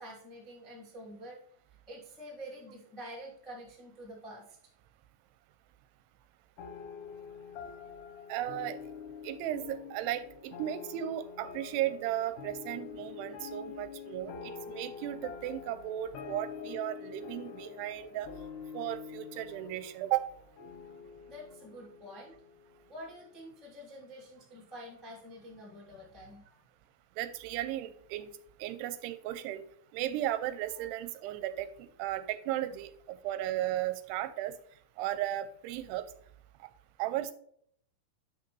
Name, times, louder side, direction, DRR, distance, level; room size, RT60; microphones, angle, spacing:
voice 1, 0.0-1.4 1.7-4.6 21.3-22.4 22.9-26.6 30.8-30.9, equal, 15° left, -4 dB, 0.7 m, -47 dB
sound 1, 6.6-23.4, left 6 dB, 75° left, 1.9 m, -46 dB
voice 2, 8.3-8.8 9.2-18.3 18.7-20.3 27.2-28.3 28.6-29.6 29.9-34.5 35.0-36.1 36.6-36.7 37.0-37.3, right 13 dB, 85° right, 11 dB, 2.6 m, -35 dB
9.2 x 6.0 x 3.1 m, 0.64 s
omnidirectional pair, 4.9 m